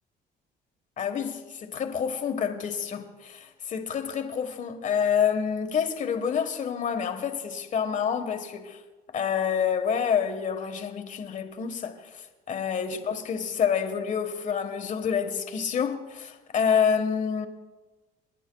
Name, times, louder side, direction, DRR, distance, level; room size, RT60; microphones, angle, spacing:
voice 1, 1.0-8.8 9.1-12.0 12.5-17.5, left 7 dB, 50° left, 1.5 m, -28 dB
29.0 x 11.0 x 2.3 m
cardioid pair, 110°, 17 cm